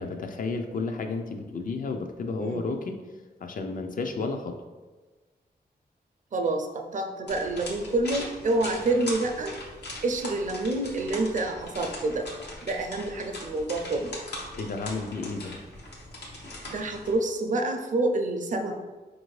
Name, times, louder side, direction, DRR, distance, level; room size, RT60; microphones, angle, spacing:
voice 1, 0.0-3.0 3.4-4.6 14.5-15.7, left 3 dB, 55° left, 5 dB, 0.4 m, -32 dB
voice 2, 2.3-2.6 6.3-9.5 10.0-12.3 12.6-14.2 16.7-18.7, right 2 dB, 50° right, 4 dB, 0.5 m, -28 dB
sound 1, 7.3-17.2, left 1 dB, 80° left, 0.8 m, -40 dB
4.3 x 2.6 x 3.1 m, 1.3 s
cardioid pair, 80°, 17 cm